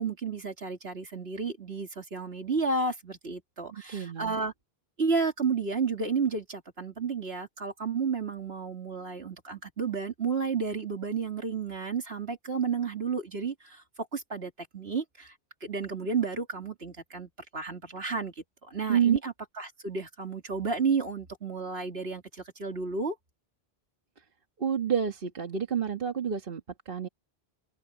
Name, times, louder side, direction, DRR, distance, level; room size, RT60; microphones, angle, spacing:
voice 1, 0.0-4.5 5.0-15.3 15.6-23.2, right 5 dB, 75° right, 3.0 m, -32 dB
voice 2, 3.7-4.4 18.9-19.2 24.6-27.1, right 8 dB, 60° right, 1.6 m, -29 dB
open air
omnidirectional pair, 1.0 m